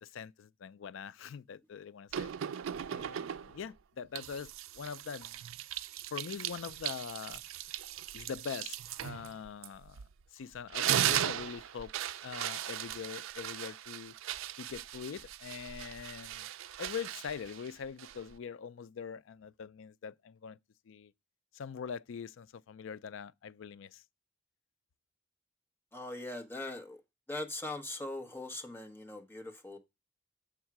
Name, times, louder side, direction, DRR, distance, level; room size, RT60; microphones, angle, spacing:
voice 1, 0.0-2.3 2.9-5.4 6.1-7.4 8.1-11.9 12.2-14.1 14.6-16.5 16.8-20.6 20.9-21.1 21.5-24.0, left 7 dB, 75° left, 0.4 m, -43 dB
sound 1, 2.1-3.7 4.2-10.2 10.5-18.4, right 11 dB, 85° right, 0.4 m, -37 dB
voice 2, 25.9-27.0 27.3-29.8, left 2 dB, 10° left, 1.1 m, -41 dB
7.3 x 3.6 x 5.8 m
head